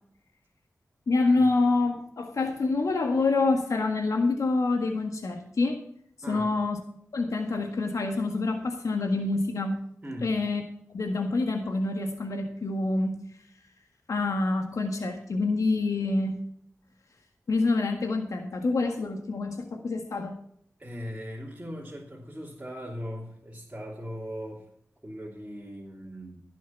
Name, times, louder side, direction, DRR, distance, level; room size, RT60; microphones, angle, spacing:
voice 1, 1.1-5.8 6.3-6.8 7.1-9.8 10.2-10.6 10.9-13.2 14.1-16.4 17.5-20.3, left 3 dB, 85° left, 4 dB, 1.7 m, -26 dB
voice 2, 6.2-6.5 10.0-10.4 20.8-24.7 25.0-26.4, equal, 25° right, -5 dB, 3.0 m, -39 dB
16.0 x 6.4 x 5.8 m, 0.63 s
wide cardioid pair, 55°, 5 cm